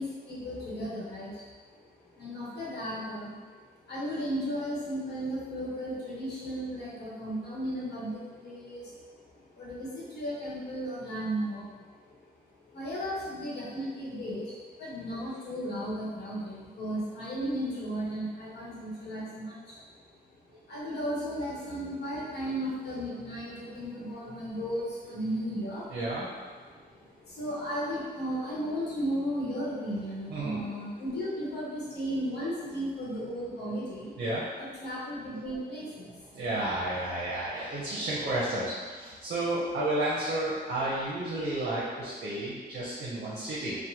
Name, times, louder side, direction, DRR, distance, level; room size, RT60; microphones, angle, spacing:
voice 1, 0.0-1.8 2.1-12.2 12.7-19.8 20.7-25.9 26.7-34.2 34.6-36.3, equal, 75° left, -7 dB, 1.0 m, -35 dB
voice 2, 25.9-26.3 30.3-30.6 34.2-34.4 36.3-43.8, right 1 dB, 60° right, -7 dB, 0.6 m, -31 dB
3.0 x 2.1 x 2.8 m, 1.5 s
wide cardioid pair, 155°, 17 cm